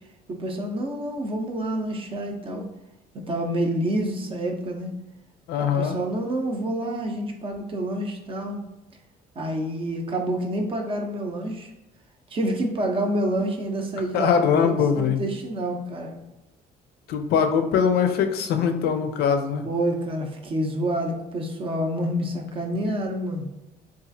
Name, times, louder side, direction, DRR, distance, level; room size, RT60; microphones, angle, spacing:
voice 1, 0.3-2.7 3.1-5.0 5.6-8.6 9.4-11.7 12.3-16.2 19.6-23.5, right 1 dB, 30° right, 3 dB, 0.5 m, -28 dB
voice 2, 5.5-6.0 14.1-15.2 17.1-19.7, left 7 dB, 75° left, 6 dB, 0.4 m, -22 dB
3.0 x 2.4 x 2.5 m, 0.97 s
cardioid pair, 110°, 17 cm